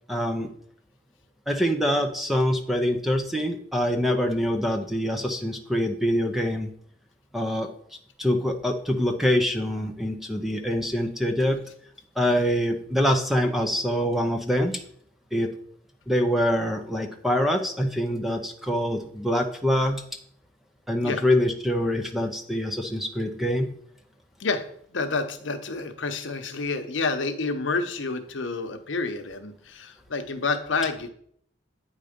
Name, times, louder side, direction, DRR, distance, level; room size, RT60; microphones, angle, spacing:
voice 1, 0.1-0.5 1.5-6.7 7.3-7.7 8.2-11.6 12.2-14.8 15.3-15.5 16.1-20.0 20.9-23.7, equal, ahead, 4 dB, 0.5 m, -25 dB
voice 2, 24.9-31.1, left 4 dB, 80° left, 8 dB, 0.8 m, -29 dB
8.9 x 4.0 x 5.1 m, 0.64 s
head